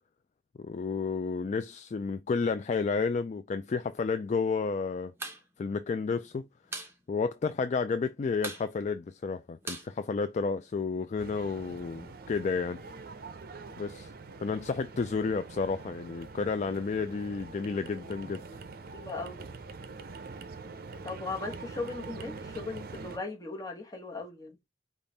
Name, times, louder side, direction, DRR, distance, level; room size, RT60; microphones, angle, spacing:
voice 1, 0.6-5.1 5.6-6.4 7.1-12.8 13.8-14.1 14.4-18.4, left 4 dB, 40° left, 0.3 m, -31 dB
sound 1, 5.1-5.4 5.7-5.8 6.1-6.9 7.3-7.4 7.6-8.0 8.4-10.7, right 2 dB, 15° right, 1.0 m, -41 dB
sound 2, 11.2-23.2, right 4 dB, 55° right, 0.6 m, -44 dB
voice 2, 18.9-19.4 21.0-24.6, left 3 dB, 20° left, 1.2 m, -38 dB
5.3 x 2.4 x 4.0 m
head